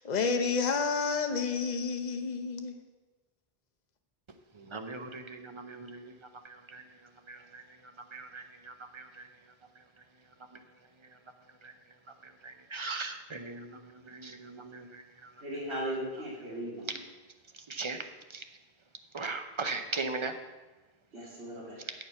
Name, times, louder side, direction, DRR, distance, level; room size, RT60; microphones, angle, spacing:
voice 1, 0.0-2.7, left 5 dB, 45° left, 5 dB, 0.9 m, -30 dB
voice 2, 4.5-11.2 11.5-15.4 17.5-18.0 18.3-18.4 19.1-20.4, right 3 dB, 35° right, 7 dB, 0.7 m, -41 dB
voice 3, 15.4-16.9 21.1-21.8, equal, 85° right, -7 dB, 2.5 m, -37 dB
8.2 x 7.0 x 5.7 m, 1.2 s
omnidirectional pair, 1.1 m